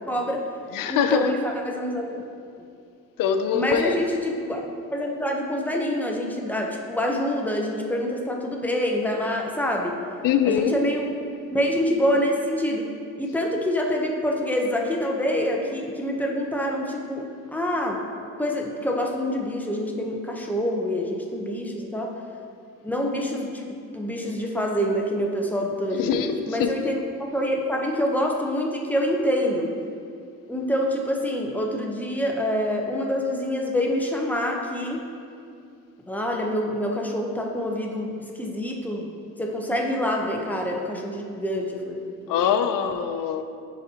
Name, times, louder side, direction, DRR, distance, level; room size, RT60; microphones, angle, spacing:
voice 1, 0.1-0.5 0.8-2.2 3.5-4.6 4.9-10.0 10.5-11.1 11.5-12.9 13.2-18.0 18.4-22.1 22.8-23.6 23.9-27.0 27.3-29.7 30.5-35.0 36.1-39.1 39.4-42.0 42.3-42.4, equal, 5° left, 0 dB, 0.7 m, -26 dB
voice 2, 0.7-1.3 3.2-4.0 10.2-10.8 25.9-26.7 42.3-43.4, left 8 dB, 80° left, 8 dB, 0.5 m, -23 dB
10.5 x 4.0 x 2.8 m, 2.4 s
cardioid pair, 110°, 33 cm